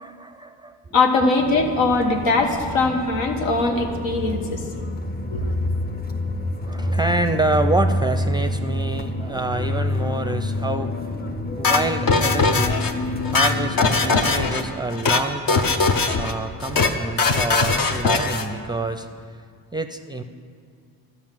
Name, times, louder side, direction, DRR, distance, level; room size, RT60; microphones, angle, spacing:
voice 1, 0.0-0.9 6.6-12.8 13.2-15.9 16.2-19.1 19.7-20.2, right 2 dB, 10° right, 8 dB, 0.5 m, -27 dB
voice 2, 0.9-4.6 5.3-5.5, left 3 dB, 80° left, 3 dB, 1.3 m, -21 dB
sound 1, 1.4-14.7, left 1 dB, 20° left, 0.7 m, -27 dB
sound 2, 11.6-12.9 13.2-14.6 14.9-15.2 15.5-16.3 16.6-16.9 17.2-18.5, left 4 dB, 50° left, 0.9 m, -20 dB
12.0 x 5.5 x 7.5 m, 2.1 s
supercardioid pair, 65°, 44 cm